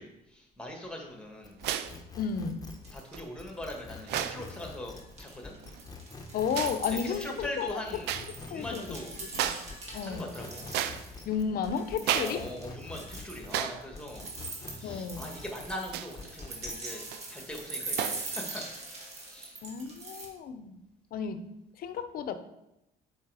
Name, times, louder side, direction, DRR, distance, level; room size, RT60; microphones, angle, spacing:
voice 1, 0.0-1.6 2.9-5.6 6.9-8.1 8.5-9.1 9.5-9.8 10.0-10.7 12.1-14.3 14.7-17.0 17.3-18.6 19.2-19.6, left 1 dB, 5° left, 1 dB, 1.6 m, -41 dB
sound 1, 1.4-13.6 13.9-16.8, left 4 dB, 20° left, 0.9 m, -46 dB
sound 2, 1.6-2.0 3.1-3.2 4.0-4.5 5.5-5.8 6.5-6.8 8.0-8.3 8.7-8.8 9.3-9.7 10.1-11.4 12.0-12.4 12.7-12.8 13.5-13.9 14.2-14.3 15.9-16.2 16.9-17.3 18.0-18.3, right 10 dB, 85° right, 0.5 m, -33 dB
voice 2, 2.2-2.6 6.3-7.8 8.5-8.8 9.3-9.5 9.9-10.3 11.3-12.4 14.8-15.3 19.6-20.8 21.1-21.5 21.8-22.3, left 7 dB, 60° left, 10 dB, 0.7 m, -33 dB
sound 3, 2.3-2.4 2.7-3.2 3.5-4.7 5.0-11.2 11.6-20.3, right 3 dB, 40° right, 2.1 m, -42 dB
7.3 x 4.5 x 4.9 m, 0.87 s
cardioid pair, 110°, 17 cm